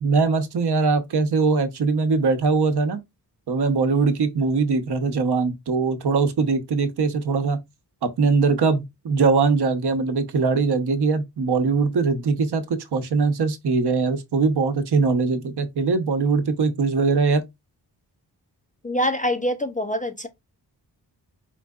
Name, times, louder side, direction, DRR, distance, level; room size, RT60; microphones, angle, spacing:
voice 1, 0.0-3.0 3.5-7.6 8.0-17.4, right 4 dB, 65° right, 0.8 m, -21 dB
voice 2, 18.8-20.3, equal, 20° left, 0.3 m, -25 dB
4.5 x 3.6 x 2.3 m
wide cardioid pair, 130°, 42 cm